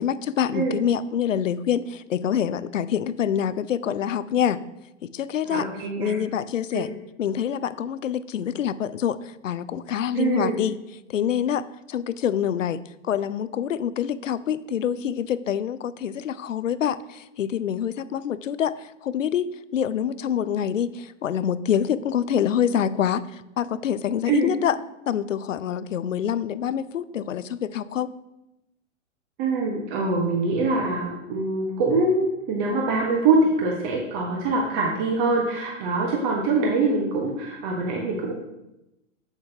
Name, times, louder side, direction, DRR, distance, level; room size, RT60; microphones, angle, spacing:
voice 1, 0.0-4.6 5.0-5.6 6.0-6.9 7.2-10.7 11.1-24.8 25.1-28.1, left 9 dB, 80° left, 16 dB, 0.5 m, -26 dB
voice 2, 5.5-6.1 6.7-6.8 10.1-10.6 24.3-24.5 29.4-38.3, right 3 dB, 40° right, 0 dB, 1.3 m, -24 dB
8.2 x 8.0 x 2.8 m, 0.92 s
figure-of-eight pair, 110°, 38 cm